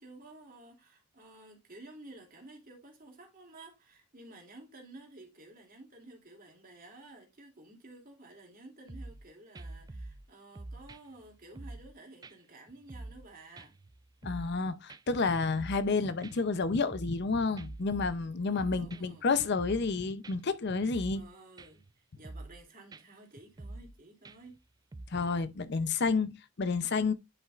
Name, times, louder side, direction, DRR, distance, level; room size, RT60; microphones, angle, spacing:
voice 1, 0.0-13.7 18.7-19.3 21.1-21.8 22.1-24.6, right 2 dB, 40° right, 2.7 m, -53 dB
sound 1, 8.9-9.3 9.5-10.3 10.6-11.9 12.2-12.3 12.7-13.3 13.6-14.6 14.9-15.0 15.4-15.9 16.2-17.3 17.6-19.2 19.6-19.9 20.2-20.4 20.7-21.3 21.6-21.9 22.2-22.6 22.9-23.0 23.4-23.9 24.2-24.6 24.9-25.1, right 2 dB, 20° right, 0.4 m, -46 dB
voice 2, 14.2-21.2 25.1-27.1, left 4 dB, 50° left, 0.6 m, -30 dB
10.5 x 5.7 x 2.4 m
head